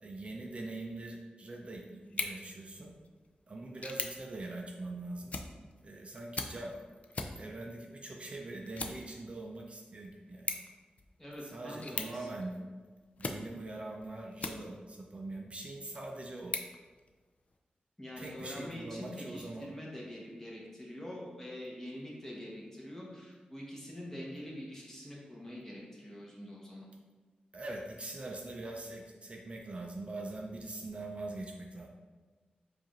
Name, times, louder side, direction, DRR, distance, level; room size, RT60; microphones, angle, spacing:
voice 1, 0.0-2.9 3.5-5.3 5.8-6.8 7.4-10.6 11.4-12.6 13.2-16.6 18.2-19.7 27.5-31.9, right 2 dB, 40° right, 0 dB, 0.4 m, -43 dB
sound 1, 2.0-15.0 15.5-17.6, left 3 dB, 50° left, 0.3 m, -44 dB
voice 2, 11.2-12.6 18.0-26.9, left 1 dB, 15° left, -5 dB, 1.0 m, -45 dB
4.8 x 2.5 x 3.0 m, 1.4 s
wide cardioid pair, 85°, 3 cm